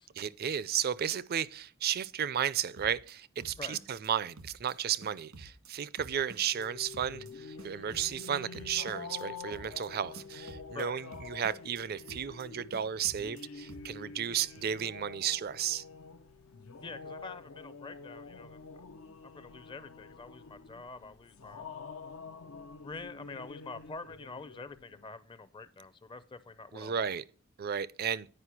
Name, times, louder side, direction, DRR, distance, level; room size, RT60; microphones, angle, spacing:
voice 1, 0.2-15.8 26.7-27.2 27.6-28.3, right 9 dB, 45° right, 0.4 m, -33 dB
sound 1, 2.8-3.1 3.4-4.1 4.4-4.7 5.0-5.7 6.0-6.7 6.9-7.3 7.6-8.3 8.5-9.2 9.5-9.9 10.1-10.8 11.1-11.8 12.1-12.5 12.7-13.4 13.7-14.0, right 2 dB, 90° right, 1.7 m, -51 dB
sound 2, 6.5-25.1, left 5 dB, 80° left, 0.6 m, -47 dB
voice 2, 16.8-18.8 19.2-21.6 22.8-27.1, left 3 dB, 25° left, 0.5 m, -46 dB
9.9 x 5.1 x 5.9 m
head